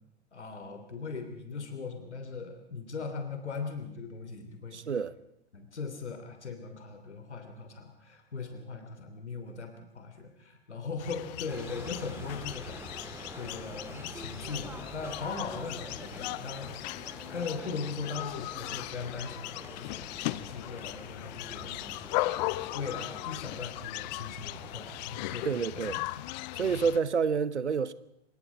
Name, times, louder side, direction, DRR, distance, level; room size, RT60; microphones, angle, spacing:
voice 1, 0.3-4.8 5.5-16.7 17.0-22.3 22.7-25.9 26.2-26.3, left 4 dB, 75° left, 3.1 m, -39 dB
voice 2, 4.7-5.1 25.4-26.0 26.6-27.9, right 6 dB, 80° right, 1.1 m, -28 dB
sound 1, 11.0-27.0, left 18 dB, 40° left, 0.8 m, -38 dB
sound 2, 11.5-25.6, right 2 dB, 5° right, 2.1 m, -48 dB
26.0 x 24.0 x 5.1 m
figure-of-eight pair, 95°, 35 cm